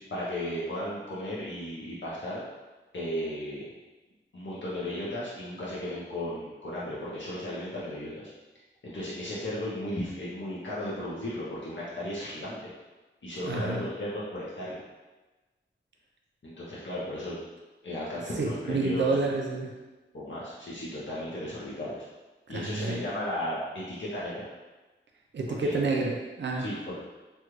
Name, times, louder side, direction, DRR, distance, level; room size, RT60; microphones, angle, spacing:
voice 1, 0.1-2.4 2.9-3.7 4.3-8.3 8.8-12.7 13.2-14.8 16.4-17.4 17.8-19.1 20.1-22.1 22.5-24.5 25.5-26.0 26.5-27.0, left 1 dB, 70° left, -8 dB, 0.8 m, -35 dB
voice 2, 13.4-13.9 18.4-19.7 22.5-23.0 25.3-26.7, right 3 dB, 65° right, 0 dB, 0.5 m, -29 dB
3.2 x 2.4 x 3.0 m, 1.2 s
wide cardioid pair, 65°, 20 cm